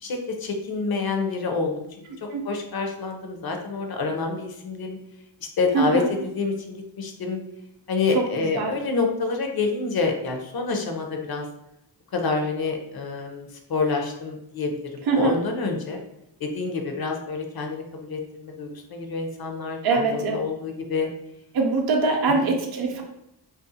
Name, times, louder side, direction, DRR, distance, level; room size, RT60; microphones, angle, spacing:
voice 1, 0.0-1.9 2.2-5.0 5.6-7.4 7.9-11.5 12.1-16.0 16.4-21.1, left 4 dB, 55° left, 3 dB, 0.6 m, -27 dB
voice 2, 5.7-6.1 8.1-8.7 15.1-15.3 19.8-20.4 21.5-23.0, right 4 dB, 55° right, 1 dB, 0.5 m, -23 dB
2.5 x 2.3 x 2.6 m, 0.82 s
cardioid pair, 60°, 45 cm